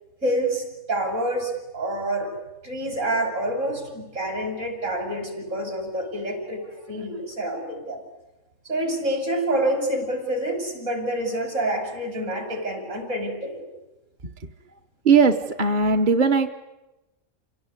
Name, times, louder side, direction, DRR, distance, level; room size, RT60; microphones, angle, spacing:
voice 1, 0.2-2.3 2.6-8.0 8.7-13.6, right 1 dB, 65° right, 4 dB, 5.7 m, -27 dB
voice 2, 15.0-16.5, right 4 dB, 40° right, 6 dB, 1.0 m, -18 dB
27.5 x 18.0 x 9.7 m, 1.0 s
omnidirectional pair, 1.4 m